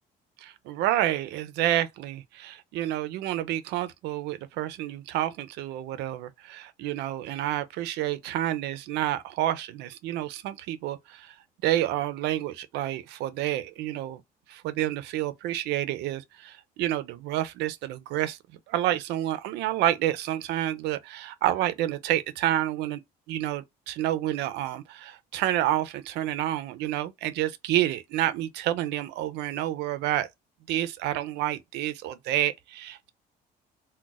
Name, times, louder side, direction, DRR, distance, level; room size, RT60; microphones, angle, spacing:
voice 1, 0.4-11.4 11.6-14.2 14.5-18.4 18.7-23.0 23.3-30.3 30.7-33.1, right 13 dB, 85° right, 0.5 m, -29 dB
2.4 x 2.2 x 3.9 m
cardioid pair, 110°, 17 cm